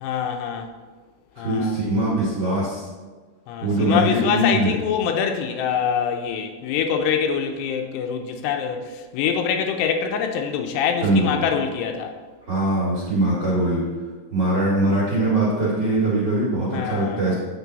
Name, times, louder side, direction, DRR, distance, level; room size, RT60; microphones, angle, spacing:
voice 1, 0.0-0.7 1.4-2.2 3.5-12.1 16.7-17.3, left 7 dB, 80° left, 4 dB, 2.7 m, -25 dB
voice 2, 1.4-2.9 3.6-4.7 11.0-11.3 12.5-13.8 14.3-17.3, right 1 dB, 40° right, -6 dB, 1.8 m, -21 dB
9.2 x 7.8 x 4.0 m, 1.4 s
omnidirectional pair, 4.9 m